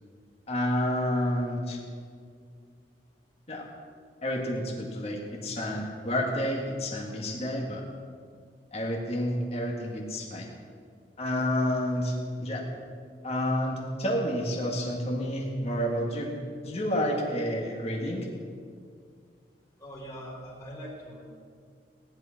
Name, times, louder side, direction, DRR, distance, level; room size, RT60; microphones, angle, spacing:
voice 1, 0.5-1.8 3.5-3.6 4.2-7.8 8.7-10.5 11.2-12.6 13.2-16.3 16.6-18.3, equal, 35° left, -1 dB, 1.9 m, -29 dB
voice 2, 19.8-21.2, equal, 20° left, -6 dB, 3.4 m, -42 dB
17.0 x 11.0 x 5.8 m, 2.1 s
head